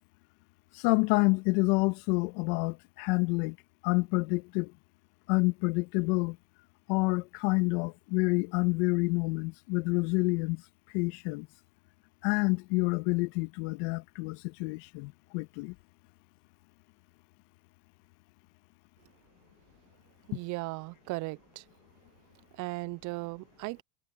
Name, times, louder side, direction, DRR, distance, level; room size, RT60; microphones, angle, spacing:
voice 1, 0.7-3.6 3.8-4.7 5.3-6.4 6.9-10.6 10.9-11.5 12.2-15.7, left 28 dB, 60° left, 2.0 m, -28 dB
voice 2, 20.3-21.4 22.6-23.8, right 23 dB, 50° right, 1.0 m, -36 dB
hypercardioid pair, 95°, 38 cm